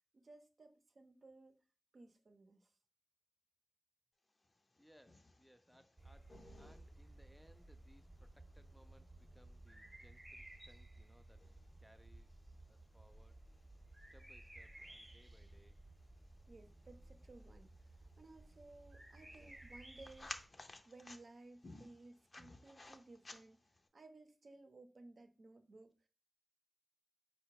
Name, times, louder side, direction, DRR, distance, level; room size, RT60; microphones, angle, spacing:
voice 1, 0.1-1.6 1.9-2.7 16.5-20.5 20.8-23.6 23.9-26.1, right 2 dB, 75° right, 0.6 m, -59 dB
sound 1, 4.4-23.9, left 2 dB, 50° left, 0.6 m, -59 dB
voice 2, 4.8-11.5 11.8-13.4 14.0-15.8, equal, ahead, 0.4 m, -68 dB
sound 2, 6.0-20.5, right 1 dB, 25° right, 0.8 m, -58 dB
4.7 x 2.2 x 4.5 m
cardioid pair, 50°, 0 cm